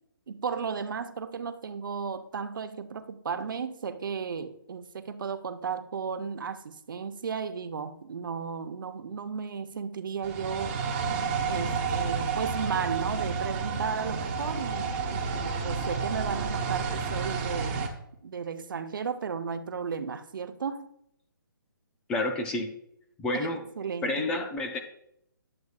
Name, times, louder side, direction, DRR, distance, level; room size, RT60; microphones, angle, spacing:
voice 1, 0.3-10.8 11.5-17.9 18.2-20.9 23.3-24.3, right 6 dB, 65° right, 0.8 m, -34 dB
sound 1, 10.2-17.9, right 5 dB, 25° right, 1.1 m, -30 dB
voice 2, 22.1-22.7 23.2-23.6 24.0-24.8, left 2 dB, 5° left, 0.3 m, -29 dB
11.0 x 7.8 x 2.4 m
hypercardioid pair, 160°, 12 cm